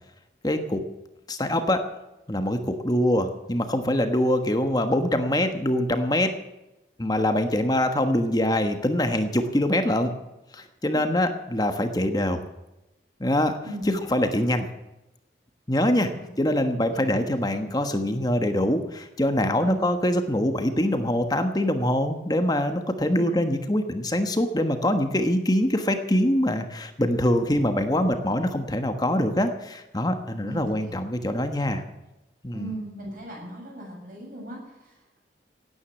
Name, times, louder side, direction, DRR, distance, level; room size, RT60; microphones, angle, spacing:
voice 1, 0.4-0.8 1.3-1.9 2.3-6.4 7.0-10.1 10.5-12.4 13.2-13.6 13.8-14.7 15.7-31.8 32.4-32.7, left 1 dB, 20° left, 7 dB, 1.3 m, -24 dB
voice 2, 13.6-14.0 16.2-16.3 16.9-17.0 19.6-19.8 23.1-23.4 30.4-31.1 32.5-35.2, right 1 dB, 50° right, -1 dB, 7.3 m, -38 dB
17.0 x 9.7 x 7.2 m, 0.97 s
head